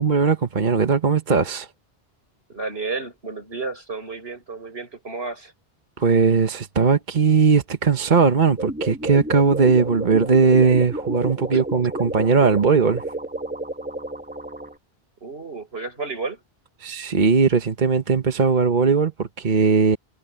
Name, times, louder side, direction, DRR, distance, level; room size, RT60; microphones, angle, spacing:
voice 1, 0.0-1.7 6.0-13.0 16.8-20.0, right 5 dB, 50° right, 1.2 m, -19 dB
voice 2, 2.5-5.5 11.5-11.6 15.2-16.4, right 4 dB, 75° right, 5.7 m, -32 dB
sound 1, 8.6-14.7, right 1 dB, 10° right, 1.5 m, -31 dB
omnidirectional pair, 1.0 m